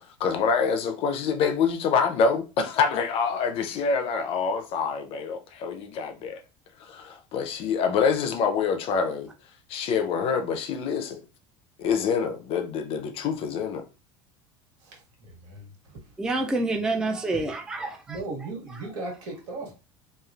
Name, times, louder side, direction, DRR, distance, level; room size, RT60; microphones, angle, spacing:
voice 1, 0.2-6.4 6.9-9.3 9.7-11.2 11.8-13.8, left 6 dB, 45° left, 0.5 m, -26 dB
voice 2, 14.8-16.0 18.1-19.7, right 2 dB, 80° right, 1.7 m, -37 dB
voice 3, 16.2-18.2, right 2 dB, 5° right, 0.3 m, -27 dB
3.1 x 2.3 x 2.4 m
supercardioid pair, 130°, 13 cm